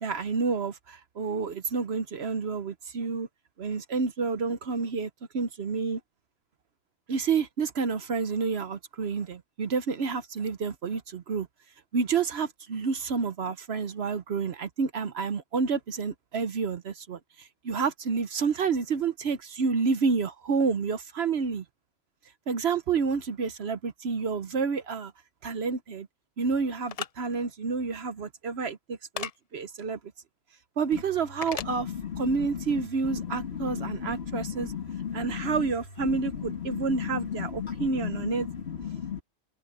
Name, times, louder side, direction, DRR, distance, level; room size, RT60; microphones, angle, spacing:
voice 1, 0.0-3.3 3.6-6.0 7.1-11.5 11.9-21.6 22.5-25.1 25.4-26.1 26.4-30.0 30.8-34.7 35.1-38.5, right 5 dB, 60° right, 1.1 m, -29 dB
sound 1, 26.9-27.1 29.2-29.3 31.4-31.7, left 8 dB, 70° left, 0.3 m, -34 dB
voice 2, 31.6-35.7 36.0-39.2, left 8 dB, 55° left, 2.1 m, -35 dB
omnidirectional pair, 1.3 m